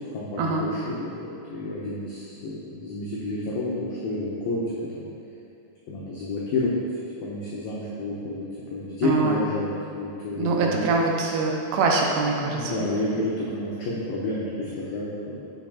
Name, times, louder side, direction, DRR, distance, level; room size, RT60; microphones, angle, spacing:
voice 1, 0.1-4.6 4.9-5.1 5.9-6.8 7.2-8.5 8.7-10.9 12.4-15.5, left 2 dB, 90° left, -6 dB, 2.0 m, -30 dB
voice 2, 9.0-9.5 10.4-12.9, right 3 dB, 80° right, 0 dB, 2.6 m, -24 dB
10.0 x 5.8 x 2.4 m, 2.8 s
omnidirectional pair, 5.1 m